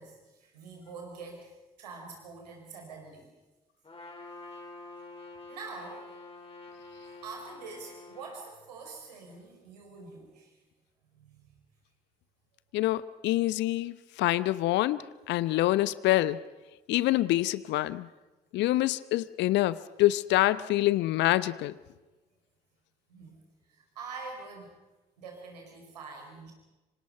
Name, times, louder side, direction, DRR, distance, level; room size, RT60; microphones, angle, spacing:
voice 1, 0.0-1.5 1.8-3.3 5.5-6.1 7.2-10.6 11.1-11.5 23.1-23.4 23.7-24.7 25.2-26.5, right 4 dB, 80° right, 1 dB, 4.8 m, -45 dB
Trumpet, 3.8-8.4, left 3 dB, 30° left, 4.7 m, -47 dB
voice 2, 12.7-13.9 14.2-16.4 16.9-18.1 18.5-21.7, left 16 dB, 60° left, 18 dB, 0.8 m, -26 dB
26.5 x 25.5 x 5.6 m, 1.1 s
figure-of-eight pair, 45°, 21 cm